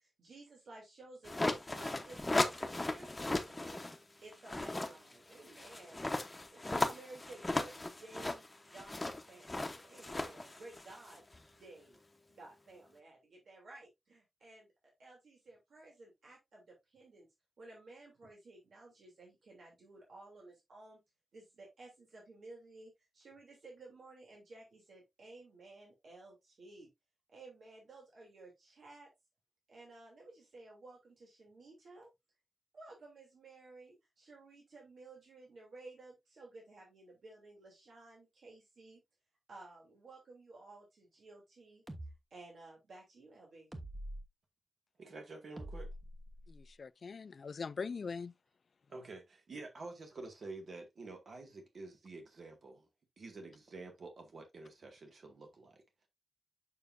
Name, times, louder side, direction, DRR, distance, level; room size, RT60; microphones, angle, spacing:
voice 1, 0.0-3.8 4.2-9.0 9.3-11.2 11.5-12.0 12.3-14.7 15.0-17.3 17.6-21.0 21.3-26.9 27.3-29.1 29.7-32.1 32.7-39.0 39.5-43.7, right 2 dB, 80° right, 3.1 m, -55 dB
sound 1, 1.2-4.0 4.3-11.4, left 2 dB, 15° left, 1.0 m, -36 dB
sound 2, 41.9-42.1 43.7-44.3 45.6-46.7, right 1 dB, 15° right, 1.2 m, -45 dB
voice 2, 45.0-45.9 48.9-52.9 53.2-55.8, right 3 dB, 60° right, 2.1 m, -49 dB
voice 3, 46.5-48.3, left 5 dB, 55° left, 0.4 m, -42 dB
6.9 x 6.7 x 2.6 m
wide cardioid pair, 170°, 0 cm